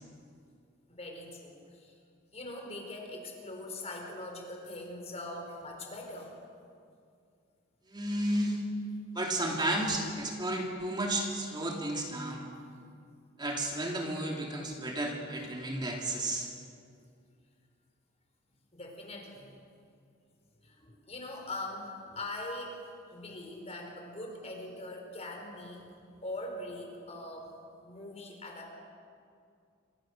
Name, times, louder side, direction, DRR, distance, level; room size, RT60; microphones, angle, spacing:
voice 1, 0.9-1.9 2.3-6.4 15.4-15.7 18.7-19.5 20.6-28.7, left 1 dB, 30° left, 2 dB, 4.8 m, -42 dB
voice 2, 7.9-8.6 9.1-12.5 13.4-16.5, right 1 dB, 20° right, 0 dB, 2.8 m, -32 dB
27.0 x 25.0 x 6.5 m, 2.4 s
head